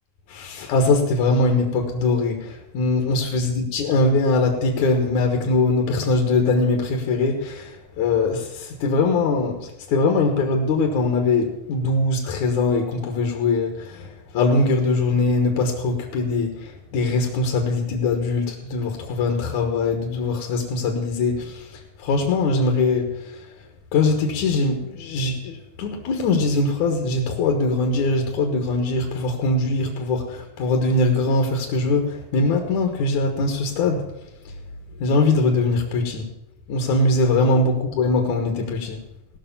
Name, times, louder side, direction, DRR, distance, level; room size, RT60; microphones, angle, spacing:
voice 1, 0.3-21.6 22.0-23.1 23.9-34.0 35.0-36.2 36.7-39.0, left 3 dB, 60° left, 2 dB, 2.3 m, -22 dB
17.0 x 6.3 x 7.1 m, 0.92 s
omnidirectional pair, 4.4 m